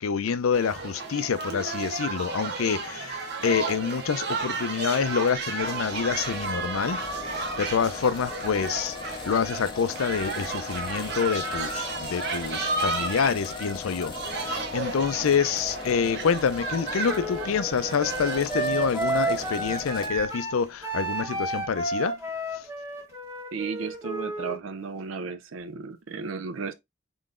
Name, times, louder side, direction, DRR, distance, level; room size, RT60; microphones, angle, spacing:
voice 1, 0.0-7.0 7.3-22.2 22.5-22.7, left 6 dB, 80° left, 0.4 m, -27 dB
sound 1, 0.5-19.6, right 3 dB, 50° right, 0.9 m, -33 dB
sound 2, 5.6-20.3, left 4 dB, 20° left, 0.4 m, -39 dB
Wind instrument woodwind instrument, 17.1-24.6, right 2 dB, 15° right, 1.1 m, -31 dB
voice 2, 23.5-26.7, right 5 dB, 70° right, 0.5 m, -34 dB
3.8 x 3.8 x 2.5 m
head